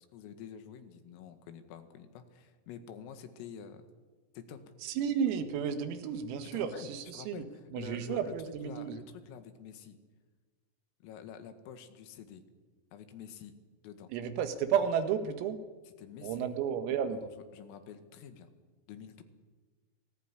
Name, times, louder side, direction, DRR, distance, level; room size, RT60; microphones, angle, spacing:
voice 1, 0.1-3.8 4.4-4.6 6.5-8.3 8.6-10.0 11.0-12.4 12.9-13.5 13.8-14.1 15.9-16.4 17.1-18.5 18.9-19.2, left 8 dB, 80° left, 8 dB, 4.5 m, -48 dB
voice 2, 4.8-7.4 7.7-9.0 14.1-15.6 16.2-17.2, right 8 dB, 85° right, 9 dB, 4.4 m, -32 dB
27.5 x 19.5 x 9.9 m, 1.4 s
omnidirectional pair, 5.9 m